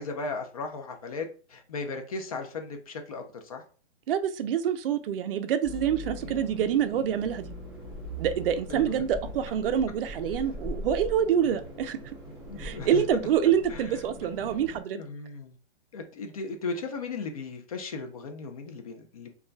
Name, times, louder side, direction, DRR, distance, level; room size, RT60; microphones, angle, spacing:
voice 1, 0.0-3.6 6.2-6.4 8.7-9.0 12.5-13.0 13.7-13.9 14.9-15.5 15.9-19.3, left 3 dB, 35° left, 4 dB, 0.4 m, -36 dB
voice 2, 4.1-7.5 8.2-12.0 12.6-15.0, right 9 dB, 55° right, 9 dB, 0.4 m, -26 dB
sound 1, 5.6-14.8, equal, 5° right, 0.7 m, -41 dB
2.3 x 2.1 x 3.7 m, 0.39 s
hypercardioid pair, 160°, 34 cm